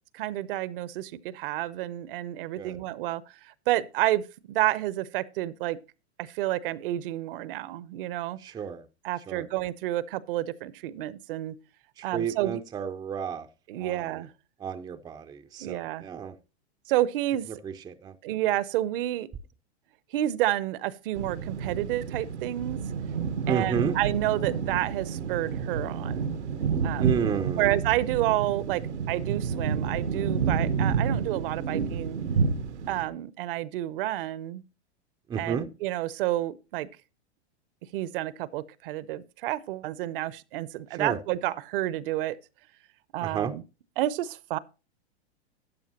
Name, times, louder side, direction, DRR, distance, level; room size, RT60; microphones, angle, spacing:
voice 1, 0.2-3.2 3.7-5.8 6.2-8.4 9.0-11.5 12.0-12.6 13.7-14.3 15.6-16.0 16.9-17.5 18.2-19.3 20.1-22.8 23.5-26.3 26.8-27.1 27.6-28.8 29.1-32.2 32.9-34.6 35.4-36.9 37.9-42.4 43.1-43.6 44.0-44.6, right 15 dB, 55° right, 0.7 m, -30 dB
voice 2, 8.4-8.9 9.3-9.5 12.0-13.5 13.8-14.3 14.6-16.4 17.5-18.2 23.5-23.9 27.0-27.7 35.3-35.7 40.9-41.2 43.2-43.5, right 7 dB, 10° right, 0.5 m, -32 dB
sound 1, 21.1-33.1, right 6 dB, 90° right, 1.0 m, -29 dB
13.0 x 8.9 x 2.9 m
hypercardioid pair, 115°, 34 cm